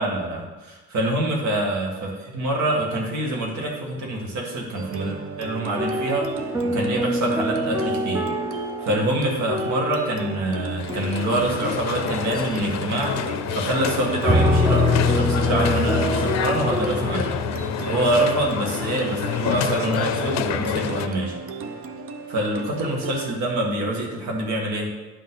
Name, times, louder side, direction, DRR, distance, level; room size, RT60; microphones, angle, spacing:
voice 1, 0.0-6.3 6.6-8.2 8.8-13.2 13.5-17.3 17.9-21.3 22.3-24.9, right 1 dB, 70° right, -1 dB, 2.1 m, -25 dB
sound 1, 4.8-23.4, right 4 dB, 50° right, 0.7 m, -35 dB
sound 2, 5.8-10.3 10.9-11.3 14.2-17.7, left 1 dB, 10° right, 0.4 m, -24 dB
sound 3, 10.8-21.1, left 9 dB, 65° left, 0.5 m, -28 dB
11.0 x 5.4 x 3.9 m, 1.2 s
cardioid pair, 175°, 29 cm